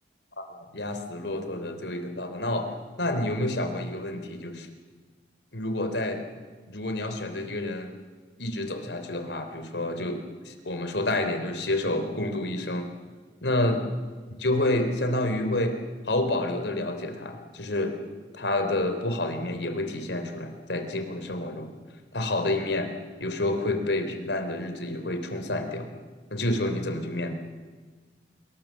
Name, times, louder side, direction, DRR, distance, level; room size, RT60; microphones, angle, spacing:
voice 1, 0.4-2.7 3.0-4.7 5.5-6.2 6.7-7.9 8.4-12.9 13.4-13.8 14.4-15.8 16.1-18.0 18.3-21.7 22.1-22.9 23.2-25.9 26.3-27.3, left 1 dB, 85° left, 7 dB, 3.4 m, -29 dB
26.5 x 22.5 x 7.5 m, 1.4 s
head